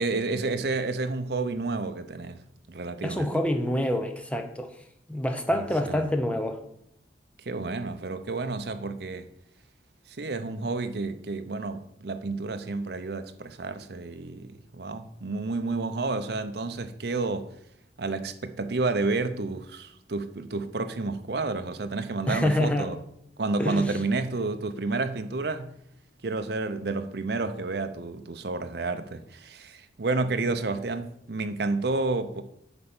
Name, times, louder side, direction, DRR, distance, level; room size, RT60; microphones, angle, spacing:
voice 1, 0.0-2.4 2.7-3.3 5.5-6.0 7.5-9.3 10.1-17.5 18.0-23.0 23.4-25.7 26.2-32.4, right 3 dB, 60° right, 0.7 m, -30 dB
voice 2, 3.0-4.7 5.1-6.6 22.3-22.9 23.6-24.0, left 1 dB, 5° left, 0.7 m, -27 dB
8.2 x 4.4 x 7.1 m
head